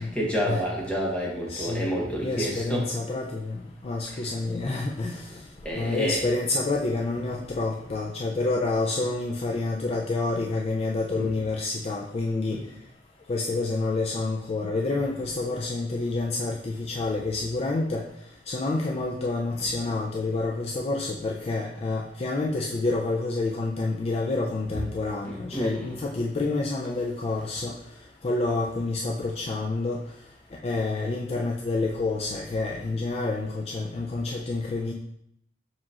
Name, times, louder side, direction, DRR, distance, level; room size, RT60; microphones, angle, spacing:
voice 1, 0.0-2.9 4.1-4.3 5.6-6.2 11.2-11.3 12.5-12.6 25.3-26.0 27.6-27.7, equal, 5° left, -4 dB, 1.1 m, -29 dB
voice 2, 1.5-1.9 2.2-5.4 5.7-12.6 13.3-18.0 18.5-27.7 28.2-30.0 30.6-34.9, left 3 dB, 35° left, -1 dB, 0.4 m, -28 dB
7.2 x 2.9 x 2.5 m, 0.73 s
head